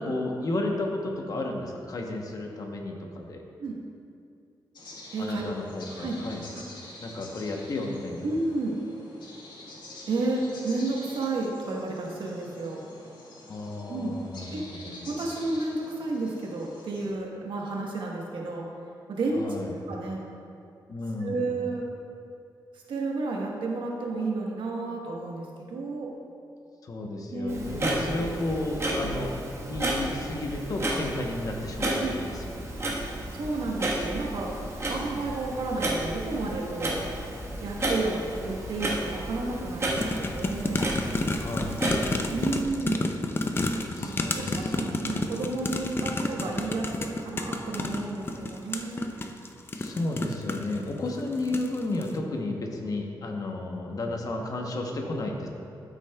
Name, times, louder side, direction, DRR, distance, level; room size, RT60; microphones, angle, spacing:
voice 1, 0.0-3.4 5.2-6.4 7.0-8.3 13.5-15.1 19.3-19.8 20.9-21.6 26.8-29.3 29.7-32.4 32.8-32.9 35.0-35.2 41.3-41.9 43.9-45.3 49.8-55.5, left 2 dB, 50° left, 2 dB, 0.9 m, -33 dB
sound 1, 4.7-17.1, left 2 dB, 65° left, 1.4 m, -47 dB
voice 2, 5.1-5.5 5.9-6.2 6.5-6.6 8.2-8.8 10.1-12.8 13.9-14.1 14.5-14.6 15.0-18.7 19.1-19.6 19.9-20.2 21.2-21.8 22.7-26.1 27.3-27.6 28.2-28.3 29.0-29.1 32.0-32.1 33.3-34.6 34.9-37.0 37.6-40.9 42.3-43.1 44.0-49.0, right 3 dB, 90° right, -1 dB, 1.2 m, -31 dB
Clock, 27.5-42.6, right 1 dB, 35° right, 1.4 m, -32 dB
sound 2, 40.0-50.8 51.3-51.7 52.0-52.1, left 2 dB, 30° left, 0.4 m, -30 dB
12.5 x 6.3 x 2.3 m, 2.5 s
wide cardioid pair, 120°, 8 cm